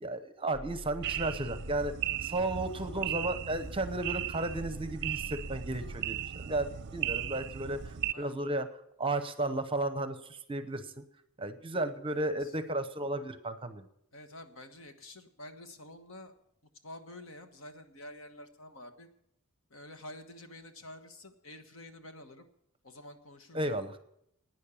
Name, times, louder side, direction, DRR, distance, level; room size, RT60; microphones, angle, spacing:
voice 1, 0.0-1.9 2.2-8.7 9.0-11.0 11.4-13.8 23.5-24.0, right 2 dB, 25° right, 10 dB, 0.8 m, -34 dB
sound 1, 0.5-2.0 2.5-6.0, equal, 80° left, 1.5 m, -47 dB
sound 2, 1.0-8.1, right 10 dB, 55° right, 0.5 m, -37 dB
voice 2, 12.1-12.6 14.1-16.3 16.8-19.1 19.7-22.5 22.8-23.8, left 1 dB, 65° left, 7 dB, 1.3 m, -49 dB
12.0 x 9.6 x 7.1 m, 0.76 s
head